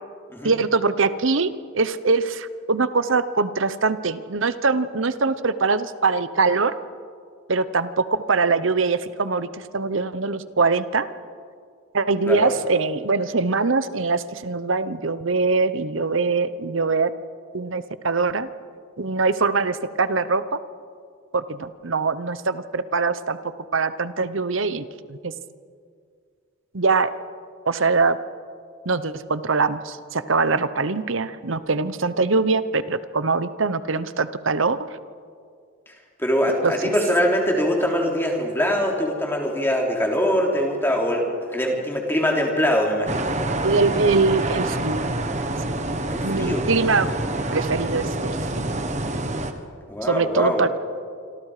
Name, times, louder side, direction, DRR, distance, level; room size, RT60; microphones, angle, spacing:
voice 1, 0.4-1.5 1.7-6.7 7.5-11.1 11.9-17.1 17.5-18.5 19.0-20.6 21.3-23.4 23.7-25.3 26.7-27.1 27.7-28.2 28.8-34.8 36.6-36.9 43.6-45.1 46.2-47.1 47.5-48.7 50.0-50.7, right 4 dB, 65° right, 14 dB, 0.9 m, -22 dB
voice 2, 36.2-41.2 41.5-43.3 46.1-46.7 46.9-47.2 49.9-50.6, equal, 10° left, 0 dB, 3.5 m, -23 dB
sound 1, 43.1-49.5, right 2 dB, 35° right, 1.4 m, -26 dB
27.0 x 26.5 x 5.0 m, 2.1 s
head